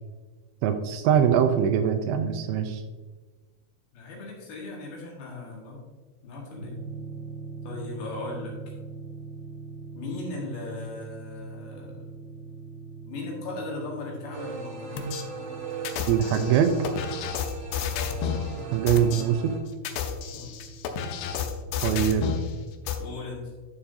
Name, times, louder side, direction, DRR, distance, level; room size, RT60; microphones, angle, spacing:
voice 1, 0.6-2.8 16.1-16.8 18.7-19.6 21.8-22.3, right 9 dB, 85° right, 7 dB, 2.7 m, -23 dB
voice 2, 3.9-5.9 6.2-6.8 7.6-8.6 9.9-12.1 13.1-15.1 17.9-18.5 20.3-20.5 21.9-22.4 23.0-23.5, left 3 dB, 65° left, -2 dB, 3.2 m, -38 dB
sound 1, 6.6-22.5, right 5 dB, 45° left, 1.8 m, -43 dB
sound 2, 14.3-19.6, right 4 dB, 55° right, 2.9 m, -39 dB
sound 3, 15.0-15.2 15.9-18.5 18.9-19.2 19.7-22.5 22.9-23.0, left 7 dB, 80° left, 2.6 m, -31 dB
11.5 x 7.1 x 2.6 m, 1.3 s
omnidirectional pair, 5.3 m